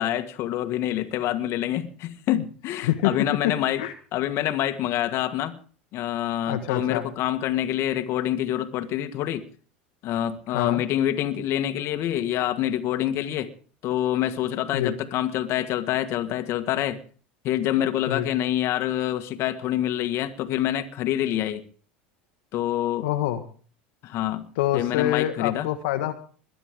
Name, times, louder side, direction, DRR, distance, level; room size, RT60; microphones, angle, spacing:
voice 1, 0.0-3.8 4.1-5.6 5.9-9.4 10.0-13.5 13.8-17.0 17.4-21.6 22.5-23.1 24.0-24.4 24.7-25.7, left 12 dB, 50° left, 9 dB, 1.7 m, -26 dB
voice 2, 6.5-7.1 10.5-10.8 14.7-14.9 18.1-18.3 23.0-23.4 24.6-26.1, left 13 dB, 70° left, 7 dB, 1.5 m, -25 dB
21.5 x 12.0 x 3.6 m, 0.41 s
hypercardioid pair, 85°, 6 cm